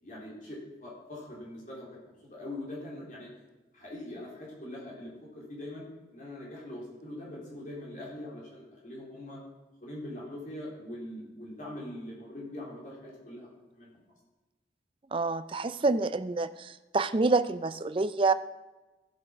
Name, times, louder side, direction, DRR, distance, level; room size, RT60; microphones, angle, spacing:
voice 1, 0.0-3.3 3.7-5.8 6.1-9.4 9.8-13.5 13.7-13.9, left 1 dB, 45° left, -5 dB, 3.8 m, -42 dB
voice 2, 15.1-18.3, right 3 dB, 30° right, 13 dB, 0.4 m, -27 dB
15.5 x 7.8 x 5.1 m, 1.1 s
head